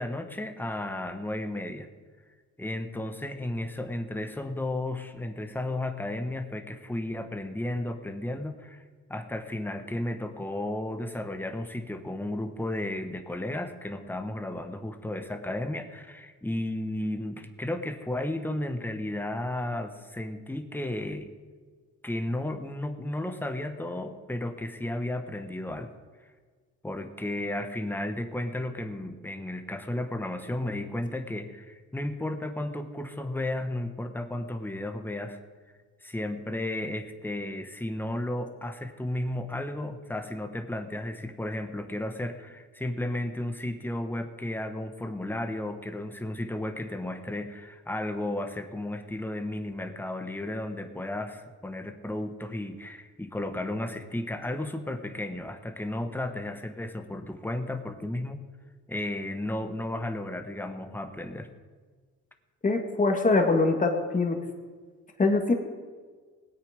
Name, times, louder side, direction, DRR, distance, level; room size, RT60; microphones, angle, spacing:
voice 1, 0.0-1.9 2.6-8.8 9.1-21.3 22.0-25.9 26.8-35.4 36.0-58.4 58.9-61.5, left 1 dB, 5° left, 7 dB, 1.2 m, -33 dB
voice 2, 62.6-64.4 65.2-65.5, left 3 dB, 25° left, 3 dB, 2.0 m, -23 dB
19.0 x 8.5 x 5.2 m, 1.5 s
cardioid pair, 90°, 30 cm